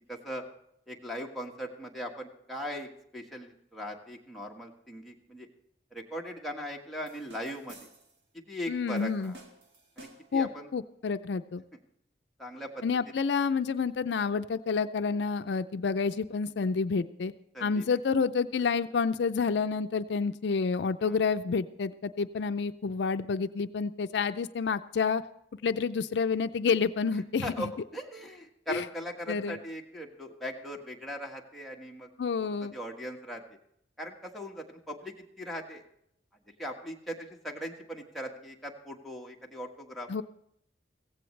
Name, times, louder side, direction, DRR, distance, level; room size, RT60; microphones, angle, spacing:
voice 1, 0.1-0.4 0.9-5.5 5.9-7.9 8.5-9.4 10.0-10.7 11.7-11.8 12.4-12.8 17.5-17.8 21.0-21.2 27.4-32.1 32.4-33.4 34.0-35.8 36.6-40.2, equal, ahead, -2 dB, 1.4 m, -39 dB
sound 1, 7.1-8.2 8.9-10.4, right 2 dB, 70° right, 1.9 m, -53 dB
voice 2, 8.7-9.3 10.3-11.6 12.8-17.3 17.6-25.2 25.6-27.5 28.7-28.8 29.3-29.6 32.2-32.7 40.1-40.2, left 5 dB, 70° left, 11 dB, 0.4 m, -29 dB
16.0 x 15.5 x 3.2 m, 0.73 s
head